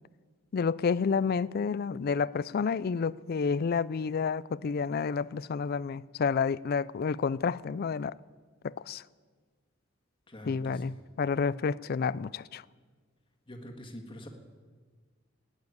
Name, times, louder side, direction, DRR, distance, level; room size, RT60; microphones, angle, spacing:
voice 1, 0.5-8.1 8.6-9.0 10.4-12.6, left 5 dB, 50° left, 0.4 m, -30 dB
voice 2, 10.3-10.9 13.5-14.3, equal, 25° left, 1.6 m, -45 dB
14.5 x 9.3 x 9.5 m
head